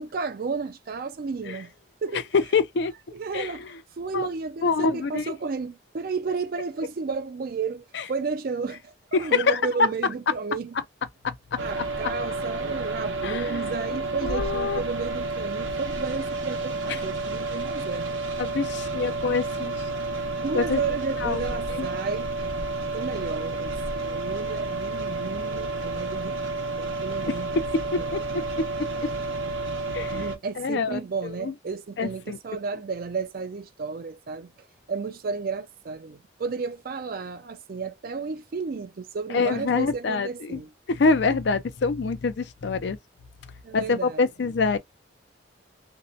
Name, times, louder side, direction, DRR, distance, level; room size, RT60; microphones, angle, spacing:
voice 1, 0.0-1.7 2.0-2.3 3.1-3.7 4.0-10.8 11.6-18.2 20.4-22.3 22.9-26.4 26.8-27.6 28.0-28.4 30.1-34.5 34.9-40.7 41.3-41.4 43.6-44.3, right 5 dB, 50° right, 0.4 m, -32 dB
voice 2, 2.5-3.5 4.1-4.3 4.6-5.3 7.9-8.0 9.1-9.6 11.2-11.6 13.2-13.7 14.2-14.8 18.4-19.7 20.5-20.8 21.2-21.4 21.7-21.9 27.3-27.4 27.9-28.2 28.6-28.9 29.9-30.3 30.6-31.5 32.0-32.4 39.3-40.6 40.9-43.0 43.7-44.8, left 4 dB, 60° left, 0.4 m, -26 dB
sound 1, 11.6-30.4, right 3 dB, 85° right, 0.7 m, -30 dB
2.6 x 2.1 x 2.4 m
head